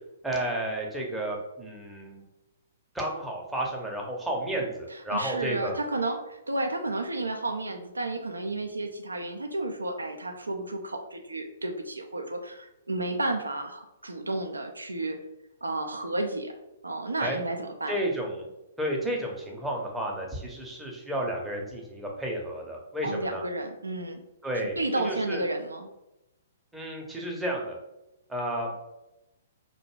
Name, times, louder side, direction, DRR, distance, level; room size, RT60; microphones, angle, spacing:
voice 1, 0.2-2.2 2.9-5.7 17.2-17.4 17.9-18.5 18.8-23.4 24.4-24.8 25.0-25.4 26.7-27.8 28.3-28.8, right 1 dB, 5° right, -2 dB, 0.6 m, -32 dB
voice 2, 4.9-15.2 15.6-16.5 16.8-18.0 23.0-24.2 24.5-25.9, right 2 dB, 85° right, 5 dB, 0.3 m, -32 dB
2.5 x 2.2 x 3.1 m, 0.93 s
figure-of-eight pair, 120°, 0 cm